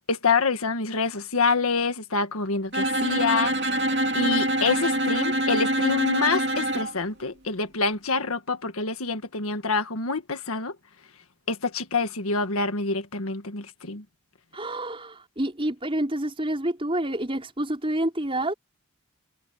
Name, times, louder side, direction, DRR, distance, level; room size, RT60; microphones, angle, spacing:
voice 1, 0.1-3.5 4.1-10.7 11.5-14.0, left 4 dB, 85° left, 1.7 m, -26 dB
Bowed string instrument, 2.7-6.9, right 1 dB, 55° right, 2.8 m, -25 dB
voice 2, 14.5-18.5, right 1 dB, 25° right, 5.5 m, -28 dB
head